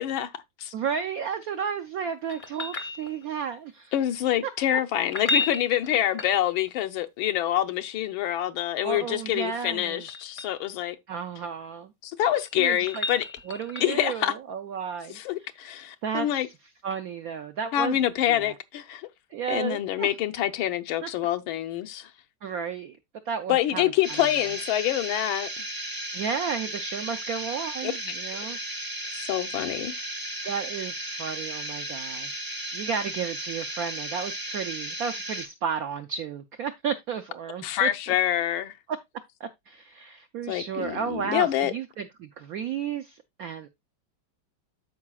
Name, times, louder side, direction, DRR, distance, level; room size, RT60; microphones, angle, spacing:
voice 1, 0.0-0.7 3.9-10.9 12.0-13.3 13.8-14.3 15.1-16.5 17.7-19.1 19.5-22.1 23.5-25.5 27.8-27.9 29.1-29.9 37.6-38.7 40.5-41.7, left 12 dB, 85° left, 1.5 m, -26 dB
voice 2, 0.7-3.9 4.4-4.5 8.8-10.1 11.1-11.9 12.6-13.1 13.5-15.2 16.0-16.5 16.8-18.0 18.3-18.5 19.3-20.1 21.0-21.1 22.4-23.0 23.3-23.9 24.2-24.3 26.1-28.6 30.4-32.5 32.7-37.9 38.9-39.0 39.4-43.7, right 7 dB, 80° right, 0.8 m, -33 dB
sound 1, 2.3-3.5 5.0-6.8 9.0-10.6 12.0-14.1 16.9-17.0, left 3 dB, 45° left, 0.6 m, -33 dB
sound 2, 24.0-35.5, right 1 dB, 25° right, 0.4 m, -35 dB
13.0 x 4.8 x 2.3 m
omnidirectional pair, 2.2 m